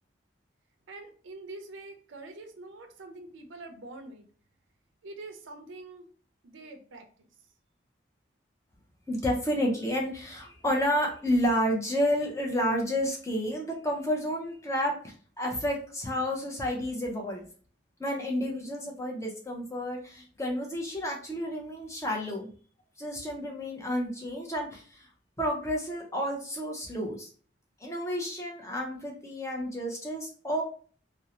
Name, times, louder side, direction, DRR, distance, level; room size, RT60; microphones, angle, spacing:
voice 1, 0.9-4.3 5.0-6.1 6.4-7.3, right 2 dB, 80° right, 6 dB, 0.5 m, -45 dB
voice 2, 9.1-17.4 18.0-22.5 23.0-25.1 25.4-27.3 27.8-30.6, equal, 15° left, -1 dB, 0.5 m, -30 dB
2.6 x 2.0 x 2.8 m, 0.43 s
head